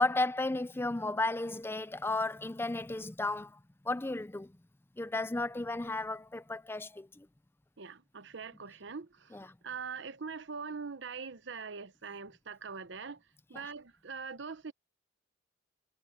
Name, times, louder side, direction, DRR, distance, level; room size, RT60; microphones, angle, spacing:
voice 1, 0.0-3.6 3.9-4.5 5.0-7.3 9.3-9.5 13.6-13.7, left 2 dB, 10° left, 0.5 m, -33 dB
voice 2, 7.8-9.4 9.6-13.2 13.5-14.7, right 5 dB, 70° right, 0.9 m, -42 dB
head